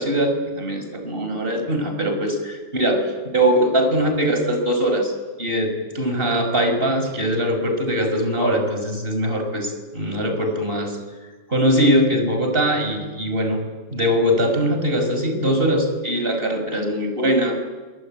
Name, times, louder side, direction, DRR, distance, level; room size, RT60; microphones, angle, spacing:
voice 1, 0.0-5.1 5.4-11.0 11.5-13.6 13.9-17.6, equal, 45° right, 5 dB, 6.1 m, -21 dB
26.5 x 24.0 x 8.9 m, 1.3 s
omnidirectional pair, 1.3 m